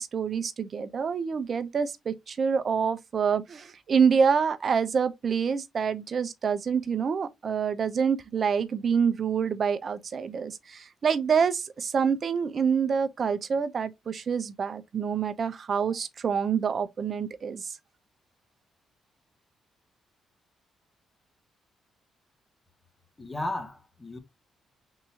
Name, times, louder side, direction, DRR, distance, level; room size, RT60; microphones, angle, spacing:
voice 1, 0.0-17.7, right 6 dB, 50° right, 0.6 m, -27 dB
voice 2, 23.2-24.2, left 2 dB, 20° left, 1.0 m, -34 dB
3.6 x 2.9 x 2.8 m
supercardioid pair, 60°, 0 cm